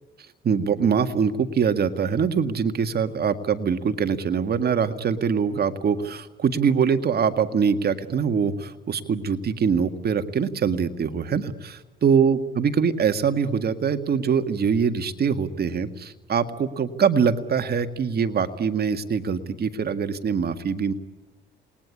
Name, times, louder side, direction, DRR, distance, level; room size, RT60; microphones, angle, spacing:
voice 1, 0.4-20.9, right 6 dB, 55° right, 8 dB, 1.9 m, -23 dB
28.5 x 20.5 x 9.8 m, 1.3 s
cardioid pair, 90°, 20 cm